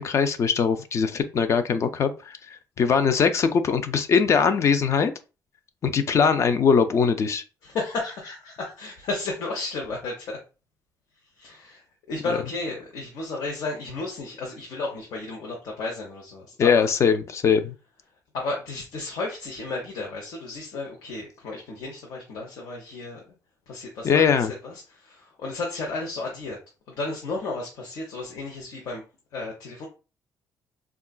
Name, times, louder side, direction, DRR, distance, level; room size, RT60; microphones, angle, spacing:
voice 1, 0.0-5.1 5.8-7.4 16.6-17.7 24.0-24.5, left 6 dB, 45° left, 10 dB, 0.3 m, -21 dB
voice 2, 7.6-10.4 11.4-16.9 18.3-23.3 23.7-26.6 26.9-29.0 29.3-29.9, left 3 dB, 70° left, -1 dB, 0.8 m, -33 dB
3.7 x 2.3 x 2.3 m, 0.32 s
cardioid pair, 125°, 7 cm